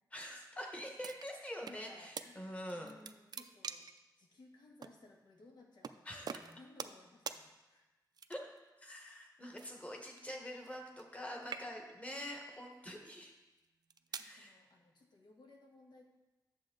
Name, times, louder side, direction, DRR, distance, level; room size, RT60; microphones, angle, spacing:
voice 1, 0.1-2.9 6.0-6.4 8.3-8.4 8.8-13.3 14.1-14.6, equal, 20° left, 1 dB, 1.3 m, -45 dB
sound 1, 1.0-1.8 2.2-2.3 2.7-4.0 4.8-4.9 5.8-6.0 6.3-7.0 7.3-7.4 8.1-8.6 9.6-11.2 11.4-12.0 12.7-13.0 13.6-14.3, right 6 dB, 65° right, 0.4 m, -45 dB
voice 2, 1.6-3.9 4.2-7.9 14.1-16.0, left 2 dB, 85° left, 1 dB, 1.4 m, -60 dB
10.5 x 7.1 x 3.8 m, 1.1 s
wide cardioid pair, 150°, 7 cm